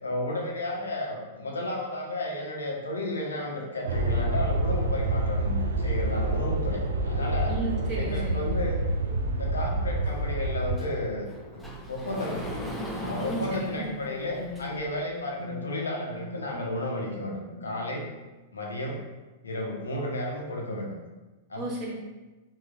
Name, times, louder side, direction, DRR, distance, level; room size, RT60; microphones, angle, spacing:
voice 1, 0.0-7.5 8.0-8.8 9.3-12.6 13.0-18.1 18.5-19.0 19.4-20.9 21.5-21.6, left 1 dB, 75° left, -1 dB, 0.5 m, -33 dB
sound 1, 3.9-10.8, right 1 dB, 70° right, 0.3 m, -27 dB
voice 2, 7.5-8.5 13.2-13.9 21.6-21.9, right 3 dB, 35° right, -5 dB, 0.9 m, -33 dB
sound 2, 9.0-9.2 10.8-11.9 14.4-18.1, left 3 dB, 40° left, 0.7 m, -42 dB
Sliding door, 10.0-15.0, equal, 5° left, 0.5 m, -39 dB
3.7 x 2.2 x 2.3 m, 1.1 s
figure-of-eight pair, 95°, 0 cm